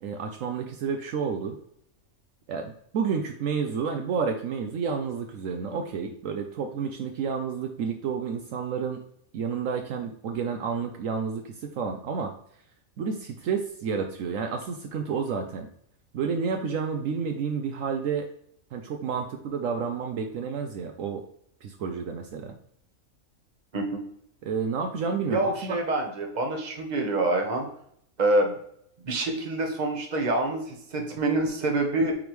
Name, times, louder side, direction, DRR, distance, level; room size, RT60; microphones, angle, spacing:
voice 1, 0.0-1.6 2.5-9.0 9.3-12.3 13.0-15.7 16.1-18.3 18.7-21.3 21.6-22.5 24.4-25.8, right 6 dB, 70° right, 5 dB, 0.9 m, -30 dB
voice 2, 25.3-27.7 28.2-28.5 29.0-32.1, right 2 dB, 35° right, 2 dB, 1.1 m, -26 dB
8.7 x 3.5 x 3.1 m, 0.69 s
omnidirectional pair, 1.5 m